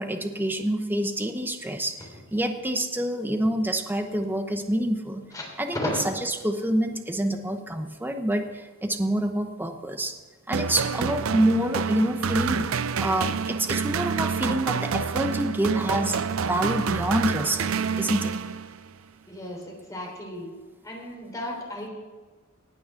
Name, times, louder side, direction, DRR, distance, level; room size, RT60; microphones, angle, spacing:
voice 1, 0.0-2.0 2.3-5.2 5.6-5.8 6.4-10.1 10.5-12.6 13.0-16.2 16.5-17.7 18.0-18.3, right 1 dB, 10° right, 6 dB, 0.9 m, -27 dB
voice 2, 5.3-6.0 19.3-20.5 20.8-21.9, left 1 dB, 15° left, -1 dB, 3.3 m, -34 dB
sound 1, 10.5-18.9, right 6 dB, 70° right, 0.5 m, -28 dB
18.5 x 6.3 x 5.8 m, 1.3 s
head